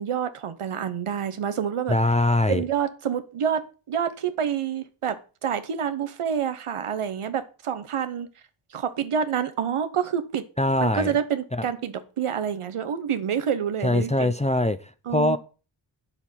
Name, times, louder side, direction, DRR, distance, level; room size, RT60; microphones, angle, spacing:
voice 1, 0.0-2.0 2.5-8.3 8.7-10.4 10.8-14.3 15.1-15.4, right 8 dB, 85° right, 1.1 m, -28 dB
voice 2, 1.9-2.6 10.6-11.2 11.5-11.6 13.8-15.4, left 1 dB, 15° left, 0.7 m, -23 dB
8.3 x 7.1 x 5.8 m
cardioid pair, 50°, 50 cm